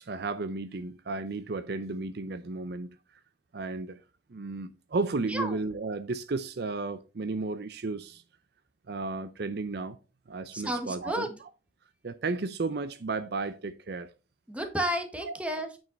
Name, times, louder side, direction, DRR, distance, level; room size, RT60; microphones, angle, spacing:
voice 1, 0.0-2.9 3.5-4.0 4.3-8.2 8.9-10.0 10.3-11.5 12.0-14.1 15.2-15.4, right 3 dB, 60° right, 0.6 m, -33 dB
voice 2, 10.5-11.3 14.5-15.7, equal, 5° right, 1.5 m, -31 dB
9.0 x 5.5 x 4.0 m
head